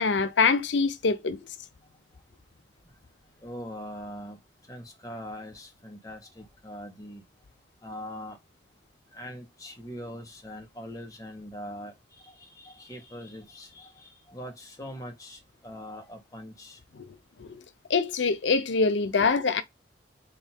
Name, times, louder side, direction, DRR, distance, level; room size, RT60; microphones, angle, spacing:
voice 1, 0.0-1.4 17.4-17.5 17.9-19.6, left 4 dB, 85° left, 0.6 m, -24 dB
voice 2, 3.4-4.4 4.7-7.2 7.8-8.4 9.1-16.8, equal, 20° left, 1.4 m, -42 dB
3.9 x 2.9 x 4.4 m
head